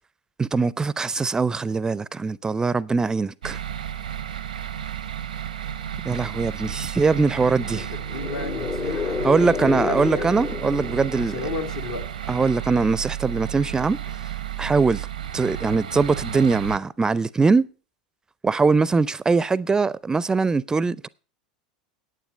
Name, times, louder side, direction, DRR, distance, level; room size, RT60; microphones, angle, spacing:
voice 1, 0.4-3.6 6.0-7.9 9.2-11.4 12.3-14.0 14.6-15.1 15.3-17.7 18.4-21.1, right 4 dB, 15° right, 0.4 m, -22 dB
sound 1, 3.4-16.8, right 10 dB, 85° right, 0.7 m, -32 dB
voice 2, 7.6-9.3 9.9-10.3 11.2-12.0, left 4 dB, 80° left, 1.8 m, -33 dB
sound 2, 8.1-11.9, left 6 dB, 30° left, 0.6 m, -30 dB
10.0 x 9.1 x 5.1 m
hypercardioid pair, 85°, 4 cm